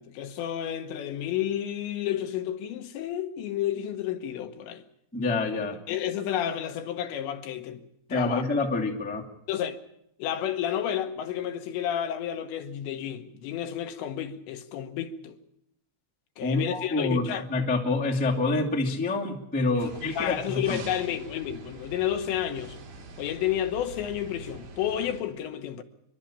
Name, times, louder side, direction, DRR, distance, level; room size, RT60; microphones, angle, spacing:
voice 1, 0.0-4.8 5.9-7.8 8.1-8.4 9.5-9.8 10.2-15.4 16.4-17.5 19.8-19.9 20.2-22.8 23.2-25.8, left 10 dB, 80° left, 3.2 m, -31 dB
voice 2, 5.1-5.8 8.1-9.2 16.4-17.2 17.5-20.8, left 3 dB, 5° left, 0.6 m, -27 dB
sound 1, 19.8-25.2, right 2 dB, 70° right, 5.2 m, -44 dB
28.0 x 11.5 x 8.7 m
omnidirectional pair, 5.2 m